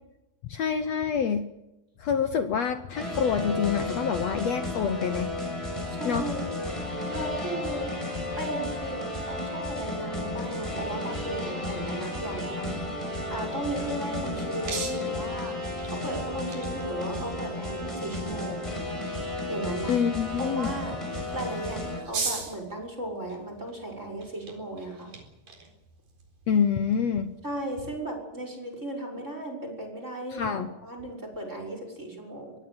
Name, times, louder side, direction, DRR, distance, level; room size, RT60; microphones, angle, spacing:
voice 1, 0.5-1.5 2.0-5.3 6.0-6.2 19.9-20.7 26.5-27.3 30.4-30.7, left 7 dB, 85° left, 9 dB, 1.4 m, -26 dB
sound 1, 2.9-22.0, left 1 dB, 5° left, 5.7 m, -33 dB
voice 2, 5.9-6.5 7.1-7.9 8.4-12.9 13.3-18.7 19.5-20.0 20.4-21.0 21.3-25.1 27.4-32.6, right 1 dB, 15° right, 3 dB, 6.2 m, -36 dB
sound 2, 13.4-27.8, right 5 dB, 55° right, 5.7 m, -42 dB
23.5 x 19.0 x 7.9 m, 0.95 s
omnidirectional pair, 4.5 m